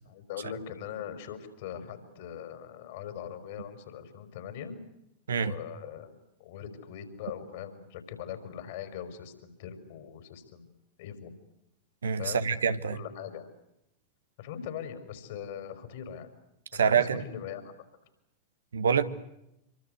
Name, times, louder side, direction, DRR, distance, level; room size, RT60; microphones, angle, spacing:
voice 1, 0.1-4.8 5.4-10.7 11.0-11.3 12.2-12.5 12.9-13.5 14.4-16.3 16.7-17.7, left 9 dB, 50° left, 5.1 m, -41 dB
voice 2, 12.0-13.0 16.7-17.2 18.7-19.0, right 6 dB, 70° right, 1.7 m, -26 dB
27.5 x 24.5 x 8.0 m
figure-of-eight pair, 90°, 0 cm